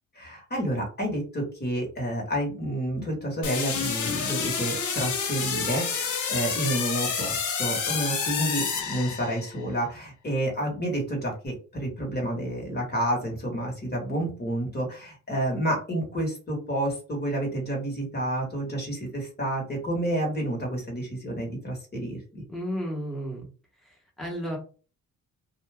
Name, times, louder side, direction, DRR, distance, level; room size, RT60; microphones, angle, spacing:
voice 1, 0.1-22.4, right 1 dB, 35° left, 0 dB, 1.4 m, -30 dB
sound 1, 3.4-9.6, left 6 dB, 75° left, 0.9 m, -29 dB
voice 2, 22.5-23.5 23.8-24.6, equal, ahead, -2 dB, 1.2 m, -33 dB
2.4 x 2.4 x 3.4 m, 0.37 s
cardioid pair, 90°, 30 cm